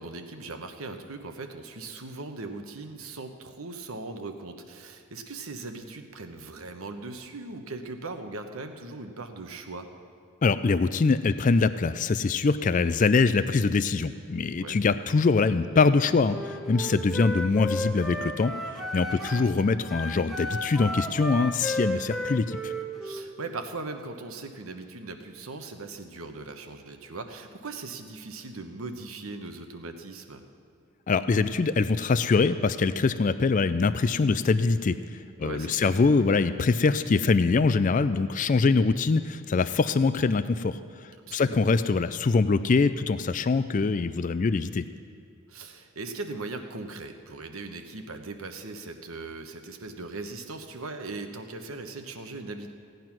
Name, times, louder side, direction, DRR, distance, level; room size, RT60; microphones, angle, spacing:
voice 1, 0.0-9.9 14.6-14.8 19.1-19.5 23.0-30.4 35.4-35.9 41.3-41.7 45.5-52.7, right 3 dB, 80° right, 7 dB, 1.1 m, -39 dB
voice 2, 10.4-22.7 31.1-35.0 35.4-40.8 41.3-44.9, left 4 dB, 35° left, 12 dB, 0.4 m, -23 dB
Wind instrument woodwind instrument, 16.2-19.5 19.9-23.3, equal, ahead, 1.0 m, -33 dB
16.5 x 9.3 x 6.0 m, 2.4 s
head